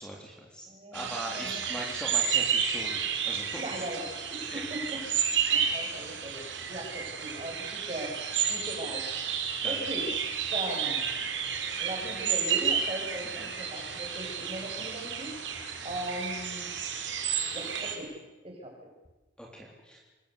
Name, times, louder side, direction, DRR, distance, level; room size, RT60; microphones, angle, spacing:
voice 1, 0.0-3.8 4.5-4.6 9.6-9.8 13.4-13.5 19.4-20.0, right 1 dB, 5° left, -1 dB, 3.6 m, -41 dB
voice 2, 0.6-1.6 3.6-5.0 5.5-6.4 6.7-8.2 8.5-9.0 9.6-10.1 10.5-11.0 11.8-16.7 17.5-18.1 18.4-18.9, right 1 dB, 30° right, 1 dB, 7.2 m, -39 dB
sound 1, 0.9-18.0, right 7 dB, 80° right, 4.3 m, -31 dB
26.0 x 22.0 x 8.4 m, 1.2 s
head